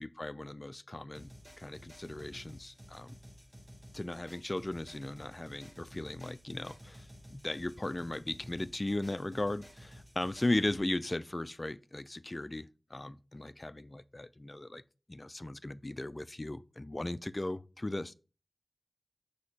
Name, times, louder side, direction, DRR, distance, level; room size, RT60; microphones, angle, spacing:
voice 1, 0.0-1.3 1.6-3.1 3.9-14.8 15.1-18.1, left 1 dB, 35° left, 0.4 m, -37 dB
sound 1, 1.1-10.8, equal, 15° right, 3.5 m, -53 dB
6.3 x 2.8 x 5.6 m
cardioid pair, 40°, 0 cm